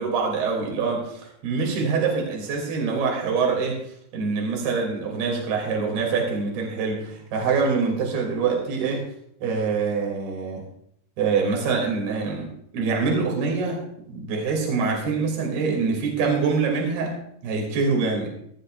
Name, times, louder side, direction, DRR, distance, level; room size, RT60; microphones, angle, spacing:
voice 1, 0.0-3.8 4.1-9.0 9.4-10.6 11.2-12.5 12.7-13.8 14.1-17.1 17.4-18.3, right 4 dB, 65° right, -1 dB, 4.8 m, -25 dB
15.5 x 15.5 x 2.5 m, 0.73 s
omnidirectional pair, 4.8 m